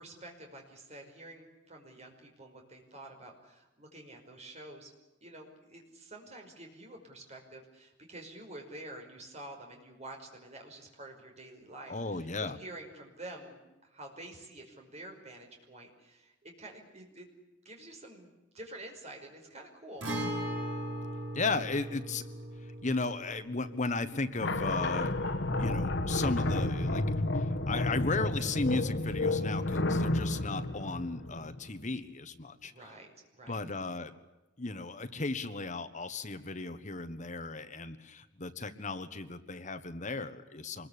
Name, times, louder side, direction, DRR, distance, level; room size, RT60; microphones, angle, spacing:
voice 1, 0.0-4.9 5.2-17.3 17.6-20.1 20.4-20.6 32.6-33.6, right 1 dB, 35° right, 2 dB, 5.3 m, -48 dB
voice 2, 11.9-12.6 21.3-22.2 22.6-25.2 25.6-32.7 33.5-34.1 34.6-40.9, left 3 dB, 40° left, 10 dB, 1.3 m, -35 dB
Guitar, 20.0-27.6 27.9-28.0 30.0-30.1, right 1 dB, 70° right, 8.0 m, -40 dB
sound 1, 24.4-31.8, left 2 dB, 65° left, 1.4 m, -31 dB
26.0 x 21.5 x 8.5 m, 1.0 s
head